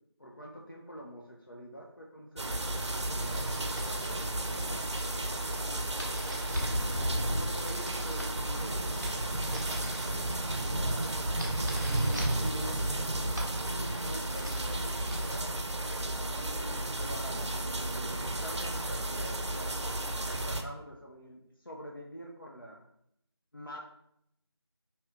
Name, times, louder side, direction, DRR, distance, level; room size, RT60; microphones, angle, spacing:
voice 1, 0.2-2.6 2.9-5.2 7.3-11.2 12.3-13.2 14.0-17.6 17.9-19.8 20.1-22.9 23.5-23.8, equal, 50° left, -2 dB, 0.4 m, -47 dB
Heavy rain outside my room, 2.4-20.6, right 1 dB, 90° right, 0.5 m, -33 dB
sound 1, 2.7-15.4, equal, 40° right, 0.7 m, -41 dB
sound 2, 3.4-19.4, equal, 25° left, 1.2 m, -48 dB
2.7 x 2.4 x 3.3 m, 0.76 s
figure-of-eight pair, 180°, 14 cm